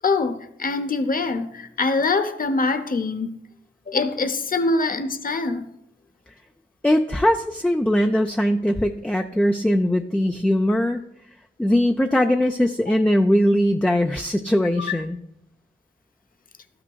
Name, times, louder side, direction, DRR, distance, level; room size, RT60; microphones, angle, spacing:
voice 1, 0.0-3.4 3.9-5.7 12.9-13.0 14.8-15.0, left 3 dB, 45° left, 10 dB, 0.7 m, -24 dB
voice 2, 6.8-11.0 11.6-15.2, equal, 5° left, 4 dB, 0.4 m, -20 dB
12.0 x 5.8 x 2.3 m, 0.82 s
cardioid pair, 40°, 21 cm